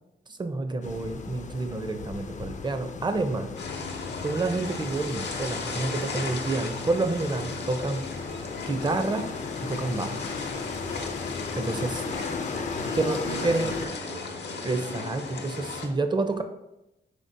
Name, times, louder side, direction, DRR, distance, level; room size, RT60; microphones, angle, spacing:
voice 1, 0.3-3.5 4.2-8.1 8.6-9.3 9.6-10.2 11.6-12.0 13.0-13.7 14.6-16.4, right 3 dB, 25° right, 8 dB, 0.5 m, -29 dB
Very windy, 0.8-13.9, left 5 dB, 45° left, 0.4 m, -37 dB
sound 1, 3.6-15.9, left 4 dB, 80° left, 0.7 m, -36 dB
voice 2, 11.7-14.6, right 1 dB, 70° right, -2 dB, 1.0 m, -40 dB
5.1 x 3.9 x 2.6 m, 0.93 s
cardioid pair, 75°, 18 cm